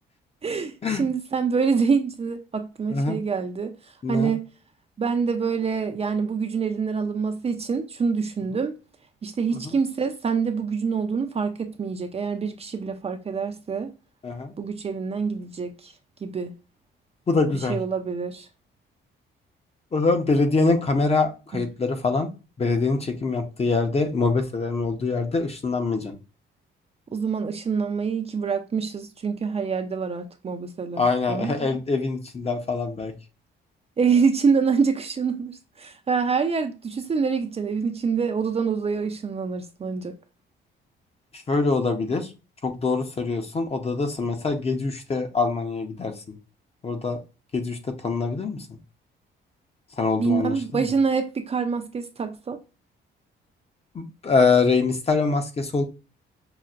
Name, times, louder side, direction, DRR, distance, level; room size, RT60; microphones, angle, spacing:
voice 1, 0.4-3.7 4.1-4.5 5.0-8.7 9.2-13.9 14.6-15.9 16.2-16.5 17.7-18.5 21.5-21.6 27.1-31.8 34.0-40.1 50.1-52.6, right 5 dB, 30° right, 0.5 m, -26 dB
voice 2, 17.3-17.8 19.9-22.3 22.6-26.2 31.0-33.1 41.5-42.3 42.6-46.4 46.8-47.2 47.5-47.8 48.0-48.6 50.0-50.5 53.9-55.8, left 4 dB, 30° left, 0.7 m, -24 dB
5.7 x 2.1 x 2.4 m
cardioid pair, 90°, 20 cm